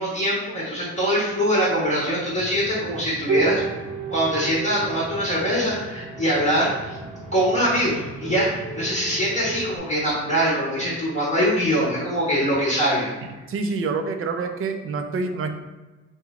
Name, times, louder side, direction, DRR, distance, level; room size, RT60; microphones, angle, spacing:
voice 1, 0.0-3.6 4.1-7.0 7.3-13.1, equal, 20° left, -8 dB, 1.4 m, -23 dB
sound 1, 2.3-9.8, right 4 dB, 85° right, 0.8 m, -32 dB
voice 2, 13.5-15.5, right 4 dB, 45° right, 6 dB, 0.5 m, -26 dB
3.1 x 2.3 x 3.6 m, 1.2 s
cardioid pair, 90°, 30 cm